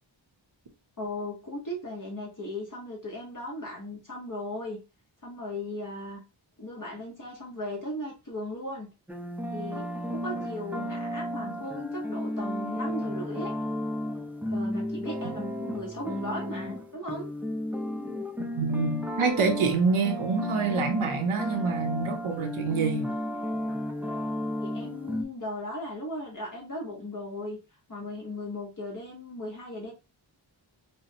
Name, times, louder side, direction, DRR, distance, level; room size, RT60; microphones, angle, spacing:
voice 1, 1.0-4.8 5.2-6.2 6.6-8.9 9.5-9.9 10.1-13.5 14.5-17.3 24.6-27.6 27.9-29.9, left 1 dB, 40° left, 1.0 m, -37 dB
sound 1, 9.1-25.2, equal, 5° right, 0.4 m, -33 dB
voice 2, 18.4-23.1, right 4 dB, 85° right, 0.8 m, -27 dB
5.5 x 2.1 x 2.7 m
wide cardioid pair, 75°, 48 cm